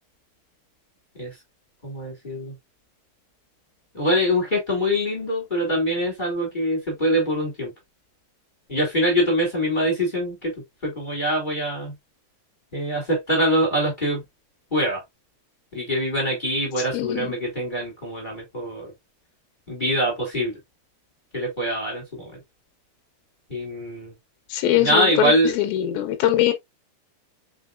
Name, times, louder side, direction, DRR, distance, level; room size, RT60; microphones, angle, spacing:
voice 1, 1.8-2.5 3.9-7.7 8.7-10.5 10.8-11.9 12.7-14.2 14.7-15.0 15.7-18.9 19.7-20.6 21.3-22.0 23.5-24.1 24.7-25.5, equal, 20° left, 1.6 m, -24 dB
voice 2, 16.8-17.3 24.5-26.5, left 12 dB, 75° left, 2.4 m, -22 dB
5.5 x 4.0 x 2.4 m
omnidirectional pair, 4.7 m